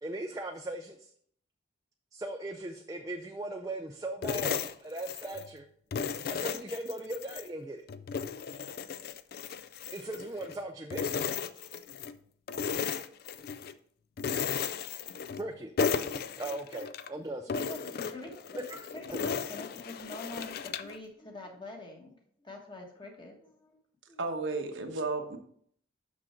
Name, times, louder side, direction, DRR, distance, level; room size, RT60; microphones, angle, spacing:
voice 1, 0.0-1.1 2.1-5.7 6.3-7.8 9.9-11.2 15.4-15.9 16.4-17.5 18.5-18.9 19.1-19.2, right 2 dB, 20° right, 3 dB, 0.4 m, -38 dB
sound 1, 4.2-5.5 5.9-7.5 7.9-10.6 10.9-12.2 12.5-13.7 14.2-15.5 15.8-17.1 17.5-21.0, left 6 dB, 50° left, 0.3 m, -35 dB
voice 2, 17.5-18.6 18.9-22.1 22.4-23.8 24.1-24.2, left 2 dB, 25° left, 1 dB, 1.3 m, -45 dB
voice 3, 24.2-25.4, right 3 dB, 75° right, 4 dB, 1.1 m, -33 dB
6.2 x 6.2 x 4.4 m, 0.64 s
head